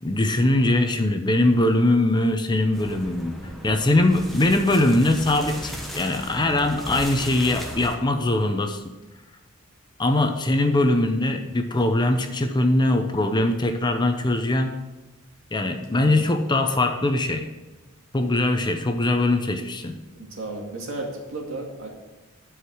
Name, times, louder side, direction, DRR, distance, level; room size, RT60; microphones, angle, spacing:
voice 1, 0.0-3.4 3.6-8.8 10.0-14.7 15.5-17.5 18.1-19.9, left 1 dB, 20° left, 6 dB, 0.7 m, -21 dB
sound 1, 2.7-8.0, equal, ahead, 1.1 m, -36 dB
voice 2, 20.2-21.9, right 2 dB, 75° right, -1 dB, 2.3 m, -34 dB
11.0 x 4.8 x 6.2 m, 1.1 s
head